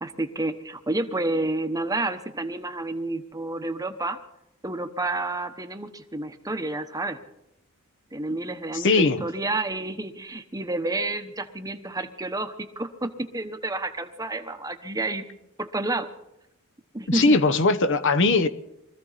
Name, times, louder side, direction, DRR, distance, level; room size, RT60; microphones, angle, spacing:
voice 1, 0.0-4.2 4.6-7.2 8.1-15.3 15.6-16.1 16.9-17.4, right 2 dB, 15° right, 1.0 m, -30 dB
voice 2, 8.7-9.3 17.1-18.5, left 3 dB, 60° left, 1.0 m, -20 dB
23.5 x 15.0 x 4.1 m
head